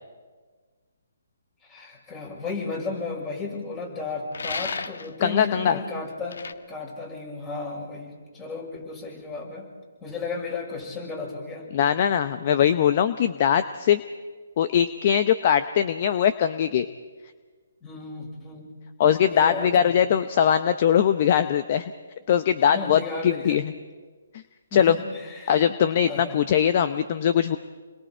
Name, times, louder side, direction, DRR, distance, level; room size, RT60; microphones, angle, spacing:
voice 1, 1.7-6.4 6.7-9.7 10.0-11.7 17.8-18.7 19.3-19.9 22.6-23.6 24.7-25.6 26.0-26.4, left 3 dB, 20° left, 0 dB, 6.4 m, -34 dB
sound 1, 4.3-5.1 6.3-6.5, left 4 dB, 75° left, 1.2 m, -33 dB
voice 2, 5.2-5.8 11.7-14.0 14.6-16.9 19.0-21.9 22.3-23.7 24.7-25.0 25.5-27.6, left 9 dB, 40° left, 11 dB, 0.8 m, -21 dB
29.0 x 22.0 x 4.5 m, 1.4 s
hypercardioid pair, 150°, 0 cm